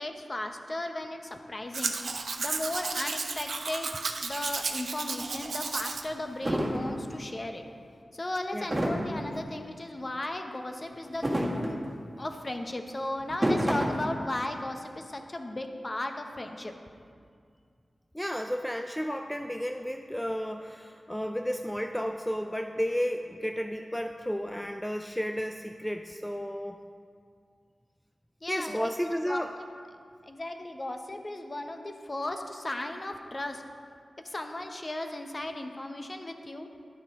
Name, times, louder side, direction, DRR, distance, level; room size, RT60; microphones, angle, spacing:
voice 1, 0.0-2.0 2.4-3.9 4.2-7.6 8.1-11.8 12.2-16.7 28.4-29.5 30.3-33.6 34.2-36.7, left 1 dB, 35° left, 5 dB, 0.8 m, -36 dB
Domestic sounds home sounds, 1.7-6.0 6.4-6.5, right 4 dB, 80° right, 0.7 m, -33 dB
sound 1, 5.2-5.3 5.9-6.0 6.4-6.9 8.7-9.2 11.1-11.9 13.2-14.0, equal, 20° right, 1.8 m, -28 dB
voice 2, 18.1-26.8 28.5-29.5, equal, 5° left, 5 dB, 0.4 m, -32 dB
11.0 x 9.6 x 3.6 m, 2.2 s
wide cardioid pair, 75°, 0 cm